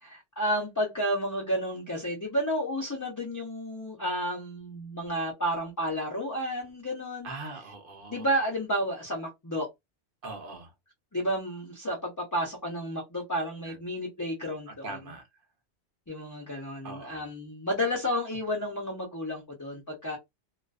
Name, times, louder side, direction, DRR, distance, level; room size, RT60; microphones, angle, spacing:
voice 1, 0.0-7.3 8.1-9.7 11.1-15.0 16.1-20.2, equal, 20° left, 0.5 m, -31 dB
voice 2, 7.2-8.3 10.2-10.7 13.6-13.8 14.8-15.2 16.8-17.3, right 3 dB, 55° right, 0.8 m, -41 dB
2.4 x 2.3 x 2.3 m
omnidirectional pair, 1.2 m